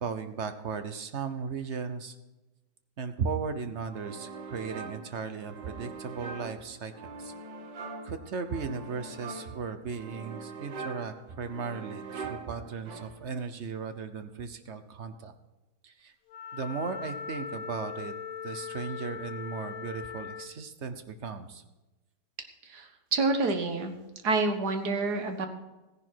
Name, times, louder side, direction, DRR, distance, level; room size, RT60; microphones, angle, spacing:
voice 1, 0.0-2.1 3.0-7.3 8.0-15.3 15.8-16.1 16.5-18.1 18.4-21.6, right 5 dB, 50° right, 9 dB, 1.0 m, -36 dB
sound 1, 3.9-13.4, right 4 dB, 90° right, 2.1 m, -43 dB
Wind instrument woodwind instrument, 16.3-20.6, left 6 dB, 60° left, 1.0 m, -40 dB
voice 2, 22.7-23.9 24.2-25.5, right 3 dB, 65° right, 6 dB, 1.9 m, -28 dB
15.0 x 10.5 x 4.5 m, 1.1 s
omnidirectional pair, 1.9 m